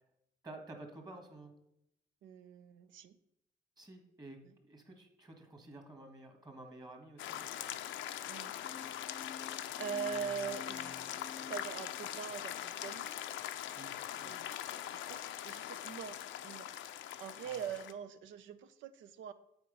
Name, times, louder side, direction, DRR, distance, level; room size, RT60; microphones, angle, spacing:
voice 1, 0.4-1.5 3.8-7.7 13.7-14.4 17.4-17.7, right 2 dB, 20° right, 4 dB, 1.6 m, -52 dB
voice 2, 2.2-3.2 4.4-4.5 8.3-8.5 9.8-13.1 14.2-14.5 14.9-16.7 17.2-19.3, right 7 dB, 75° right, 13 dB, 0.6 m, -43 dB
sound 1, 7.2-17.9, left 11 dB, 75° left, 0.5 m, -42 dB
sound 2, 8.6-12.4, left 5 dB, 25° left, 0.3 m, -51 dB
8.1 x 4.4 x 5.3 m, 0.78 s
cardioid pair, 90°, 20 cm